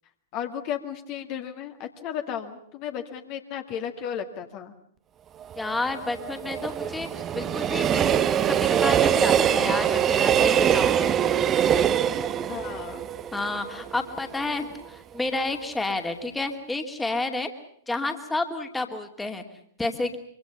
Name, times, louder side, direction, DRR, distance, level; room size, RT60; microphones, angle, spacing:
voice 1, 0.3-4.7 12.5-13.1, left 9 dB, 35° left, 5 dB, 2.0 m, -34 dB
Train, 5.4-14.5 14.9-15.0, right 9 dB, 25° right, 1.1 m, -23 dB
voice 2, 5.6-11.1 13.3-17.5 17.9-19.4 19.8-20.2, left 2 dB, 10° left, 6 dB, 2.5 m, -30 dB
25.5 x 24.5 x 7.0 m, 0.68 s
figure-of-eight pair, 105°, 0 cm